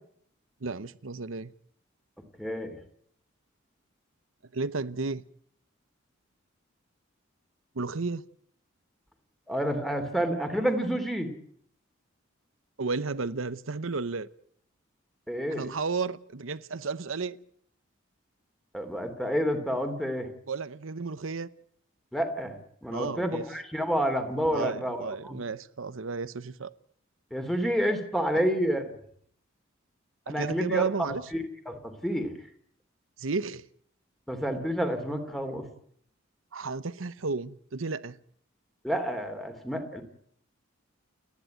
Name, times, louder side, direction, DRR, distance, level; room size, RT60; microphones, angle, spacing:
voice 1, 0.6-1.5 4.5-5.2 7.7-8.2 12.8-14.3 15.5-17.4 20.5-21.5 22.9-23.4 24.5-26.7 30.3-31.2 33.2-33.7 36.5-38.2, right 4 dB, 75° right, 0.9 m, -33 dB
voice 2, 2.4-2.8 9.5-11.3 15.3-15.7 18.7-20.3 22.1-25.4 27.3-28.8 30.3-32.3 34.3-35.7 38.8-40.0, equal, ahead, 3.0 m, -29 dB
29.5 x 11.0 x 9.2 m
head